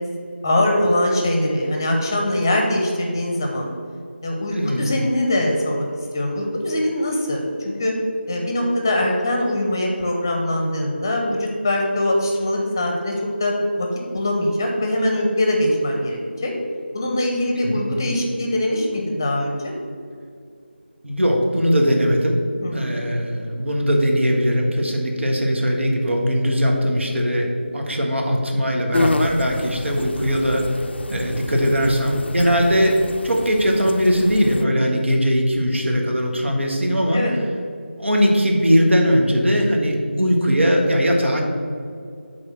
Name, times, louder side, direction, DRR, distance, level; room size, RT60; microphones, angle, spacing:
voice 1, 0.4-3.7 4.2-5.9 6.1-7.9 8.3-13.1 13.4-13.5 13.8-13.9 14.1-16.5 16.9-19.7 22.6-23.0 37.1-37.3, left 1 dB, 20° left, 1 dB, 0.7 m, -22 dB
voice 2, 4.5-4.9 17.6-17.9 21.0-22.4 22.7-30.6 31.1-37.2 38.0-41.4, equal, 90° right, 0 dB, 1.6 m, -20 dB
sound 1, 28.9-34.6, left 2 dB, 65° left, 0.3 m, -29 dB
7.8 x 3.8 x 6.2 m, 2.3 s
figure-of-eight pair, 170°, 6 cm